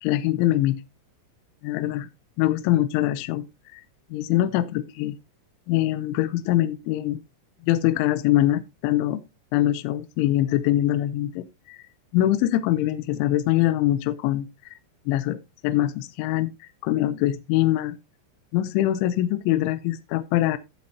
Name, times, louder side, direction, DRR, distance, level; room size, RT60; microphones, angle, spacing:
voice 1, 0.0-0.8 1.6-2.1 2.4-3.5 3.7-3.8 4.1-5.2 5.7-7.2 7.7-9.2 9.5-11.8 12.1-14.7 15.1-18.0 18.5-20.6, left 14 dB, 85° left, 3.0 m, -23 dB
14.5 x 8.4 x 2.8 m
omnidirectional pair, 5.5 m